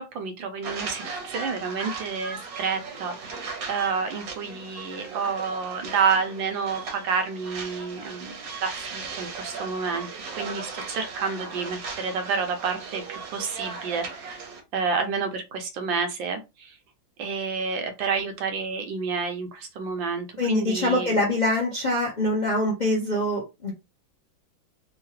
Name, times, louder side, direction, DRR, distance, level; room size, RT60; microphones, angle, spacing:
voice 1, 0.0-8.3 8.6-14.4 14.7-16.7 17.2-21.2, right 5 dB, 80° right, 1.4 m, -29 dB
sound 1, 0.6-14.6, right 4 dB, 55° right, 1.1 m, -37 dB
voice 2, 20.4-23.7, left 1 dB, 35° left, 0.7 m, -24 dB
3.7 x 2.3 x 2.9 m
omnidirectional pair, 2.1 m